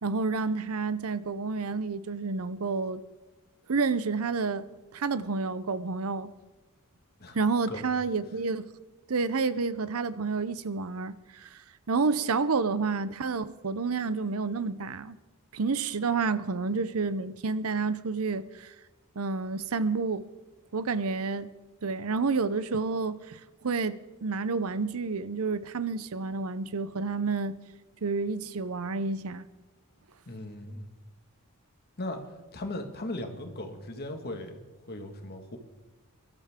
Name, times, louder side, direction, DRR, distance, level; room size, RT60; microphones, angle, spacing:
voice 1, 0.0-3.0 3.7-4.7 4.9-6.3 7.3-8.7 9.1-11.6 11.9-15.2 15.5-18.7 19.2-20.3 20.7-21.5 21.8-27.6 28.0-29.4, right 4 dB, 65° right, 0.7 m, -29 dB
voice 2, 30.3-30.9 32.0-35.6, left 1 dB, 45° left, 1.8 m, -38 dB
23.5 x 13.0 x 3.7 m
head